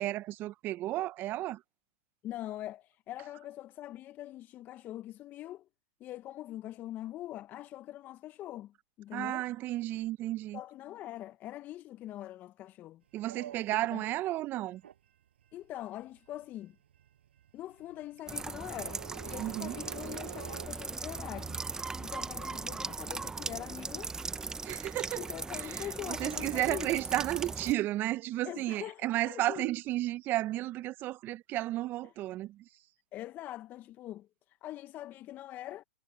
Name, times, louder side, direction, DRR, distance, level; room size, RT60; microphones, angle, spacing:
voice 1, 0.0-1.6 9.1-10.6 13.1-14.8 19.4-19.8 24.6-32.7, right 16 dB, 35° right, 1.0 m, -33 dB
voice 2, 2.2-5.6 6.0-9.4 10.5-13.0 13.9-14.0 15.5-16.7 17.5-24.1 25.2-26.9 28.4-29.7 33.1-35.8, left 14 dB, 30° left, 1.1 m, -43 dB
sound 1, 13.1-20.7, right 10 dB, 70° right, 7.2 m, -49 dB
sound 2, 18.3-27.7, right 4 dB, 10° right, 1.1 m, -39 dB
hypercardioid pair, 115°, 6 cm